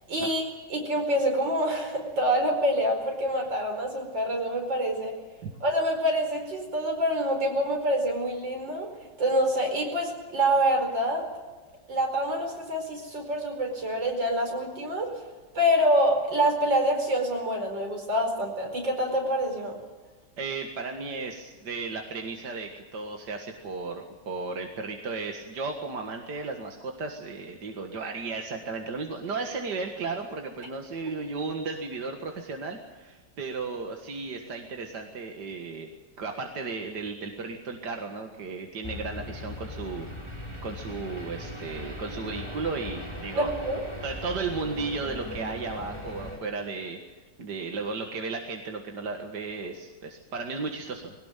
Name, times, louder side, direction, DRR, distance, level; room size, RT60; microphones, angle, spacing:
voice 1, 0.1-0.4 0.7-5.1 5.6-8.9 9.2-11.3 11.9-15.2 15.6-19.8 43.3-43.8, equal, 85° right, 3 dB, 5.4 m, -26 dB
voice 2, 20.4-35.9 36.2-40.3 40.6-43.5 44.0-47.0 47.4-51.1, right 4 dB, 70° right, 3 dB, 2.4 m, -34 dB
sound 1, 38.8-46.4, left 1 dB, 15° right, 5.7 m, -39 dB
21.5 x 18.5 x 9.0 m, 1.3 s
omnidirectional pair, 1.9 m